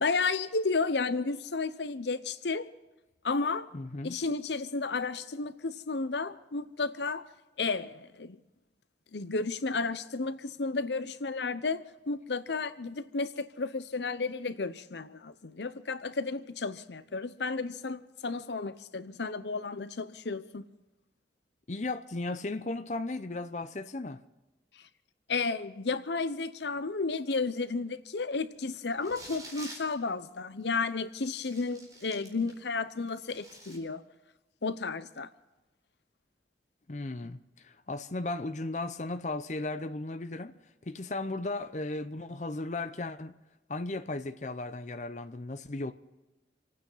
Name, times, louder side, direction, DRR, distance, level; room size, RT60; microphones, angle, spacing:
voice 1, 0.0-2.7 3.2-3.7 4.0-7.3 7.6-8.4 9.1-20.6 25.3-34.0 34.6-35.3, left 4 dB, 80° left, 0.8 m, -32 dB
voice 2, 3.7-4.2 21.7-24.2 36.9-40.6 40.9-43.3 43.7-45.9, left 2 dB, 40° left, 0.7 m, -36 dB
sound 1, 28.9-29.9 30.7-30.8 31.4-32.6 33.0-33.8, right 2 dB, 20° right, 4.6 m, -48 dB
27.0 x 9.4 x 5.6 m
head